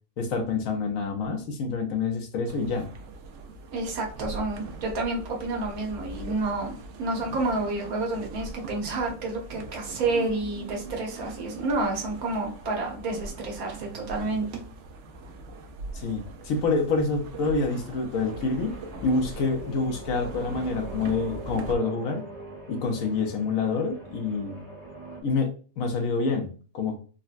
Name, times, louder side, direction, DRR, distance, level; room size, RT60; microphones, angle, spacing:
voice 1, 0.2-2.9 15.9-18.7 19.0-22.2 22.7-24.6 25.2-27.0, left 4 dB, 75° left, 3 dB, 1.0 m, -27 dB
sound 1, 2.4-21.8, right 3 dB, 65° right, 0.8 m, -41 dB
voice 2, 3.7-14.5, right 2 dB, 85° right, 0 dB, 1.3 m, -29 dB
sound 2, 18.1-25.2, right 1 dB, 50° right, 1.3 m, -42 dB
3.8 x 2.1 x 2.4 m, 0.39 s
omnidirectional pair, 1.5 m